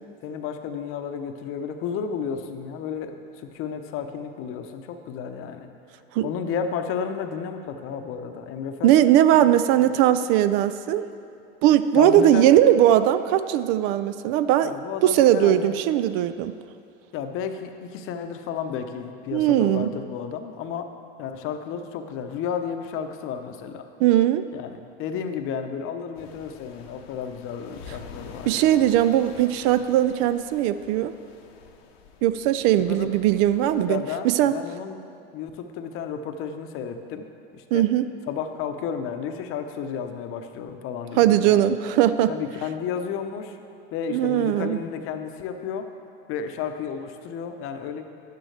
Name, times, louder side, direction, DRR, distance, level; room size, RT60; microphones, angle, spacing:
voice 1, 0.2-5.7 6.2-8.9 9.5-9.6 9.8-9.9 12.0-12.5 14.6-15.8 17.1-20.9 21.2-23.9 24.5-28.6 32.8-33.2 33.9-35.0 35.3-37.3 37.5-37.9 38.3-41.6 42.3-43.6 43.9-45.9 46.3-48.0, left 7 dB, 45° left, 7 dB, 0.8 m, -32 dB
voice 2, 8.8-11.1 11.6-14.7 15.0-16.5 19.3-19.9 24.0-24.5 28.5-31.1 32.2-34.5 37.7-38.1 41.2-42.3 44.1-44.8, right 12 dB, 50° right, 13 dB, 0.4 m, -19 dB
sound 1, 26.1-33.9, left 5 dB, 80° left, 1.0 m, -46 dB
11.0 x 9.1 x 3.3 m, 2.5 s
hypercardioid pair, 105°, 30 cm